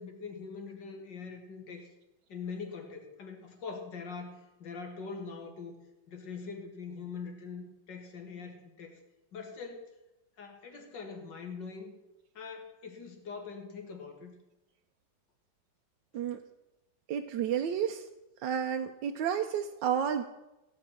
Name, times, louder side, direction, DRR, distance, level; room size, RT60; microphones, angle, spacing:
voice 1, 0.0-1.9 2.3-5.8 6.1-9.0 9.3-9.9 10.4-11.9 12.3-14.4, left 5 dB, 80° left, 4 dB, 2.6 m, -43 dB
voice 2, 17.1-18.1 18.4-20.3, right 8 dB, 90° right, 5 dB, 1.4 m, -31 dB
16.5 x 5.5 x 8.9 m, 0.98 s
omnidirectional pair, 1.9 m